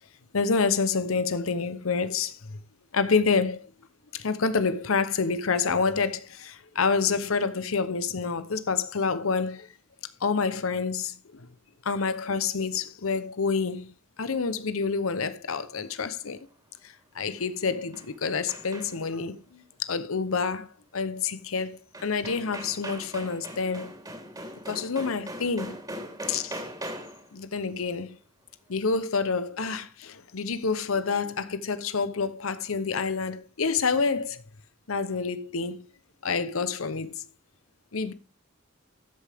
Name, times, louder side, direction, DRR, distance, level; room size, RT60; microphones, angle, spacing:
voice 1, 0.3-2.6 2.9-3.6 4.1-9.7 10.2-11.4 11.8-13.9 14.2-16.5 16.8-19.4 19.8-20.7 20.9-23.9 24.7-25.8 26.3-26.6 27.3-28.1 28.7-34.4 34.9-35.8 36.2-37.2 37.9-38.1, left 5 dB, 85° left, 0.8 m, -28 dB
sound 1, 17.4-19.2 21.5-21.6 21.9-27.3, right 1 dB, 20° right, 3.4 m, -40 dB
13.5 x 8.4 x 3.5 m
head